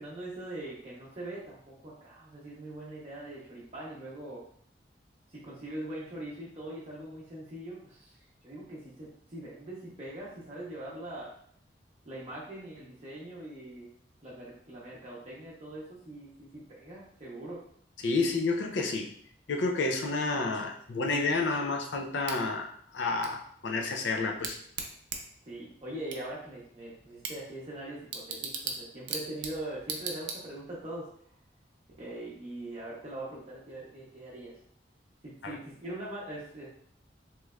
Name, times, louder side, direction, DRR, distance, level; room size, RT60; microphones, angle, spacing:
voice 1, 0.0-4.4 5.3-8.2 8.4-11.3 12.0-13.9 14.2-17.6 25.4-31.1 32.0-34.6 35.2-36.7, right 1 dB, 35° right, -6 dB, 0.6 m, -42 dB
voice 2, 18.0-19.1 19.5-24.6 35.4-35.6, left 3 dB, 90° left, 2 dB, 0.4 m, -30 dB
Bicycle / Tick, 22.2-30.8, right 5 dB, 85° right, 0.5 m, -41 dB
3.1 x 2.9 x 2.3 m, 0.63 s
head